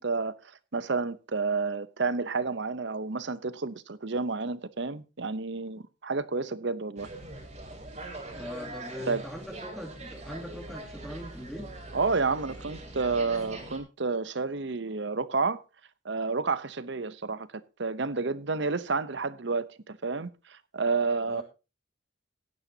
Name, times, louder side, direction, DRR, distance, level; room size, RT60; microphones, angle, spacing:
voice 1, 0.0-7.1 9.1-9.2 11.9-15.6 16.0-21.4, right 4 dB, 60° right, 0.8 m, -30 dB
sound 1, 7.0-13.8, right 2 dB, 35° right, 3.3 m, -42 dB
voice 2, 8.3-11.7 21.3-21.4, equal, ahead, 2.6 m, -41 dB
16.5 x 11.0 x 2.8 m
head